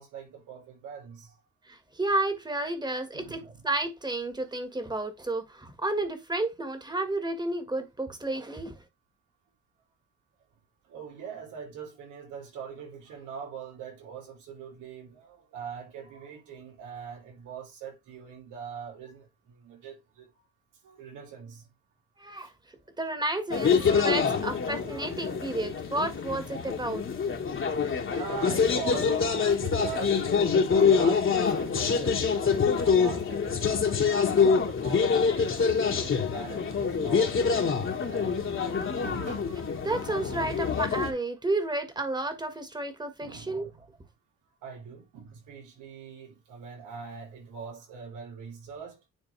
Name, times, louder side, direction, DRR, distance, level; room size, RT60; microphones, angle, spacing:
voice 1, 0.0-1.4 3.1-3.6 10.8-20.3 20.8-21.7 22.4-22.5 24.2-24.6 25.5-25.6 28.1-34.1 34.4-39.6 43.2-43.8 44.6-49.0, right 6 dB, 90° right, 3.1 m, -42 dB
voice 2, 1.7-8.8 22.2-22.5 23.0-27.0 39.8-43.7, right 2 dB, 15° right, 1.8 m, -31 dB
sound 1, 23.5-41.1, left 6 dB, 40° left, 1.7 m, -26 dB
9.8 x 3.6 x 3.4 m
cardioid pair, 90°, 30 cm